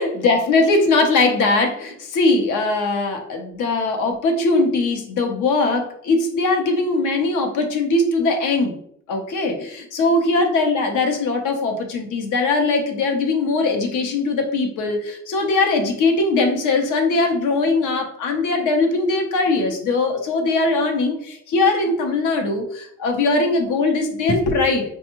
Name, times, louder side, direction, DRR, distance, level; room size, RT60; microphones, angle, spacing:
voice 1, 0.0-8.8 9.1-24.9, left 3 dB, 85° left, 4 dB, 0.8 m, -20 dB
4.3 x 2.3 x 2.9 m, 0.68 s
cardioid pair, 90°, 30 cm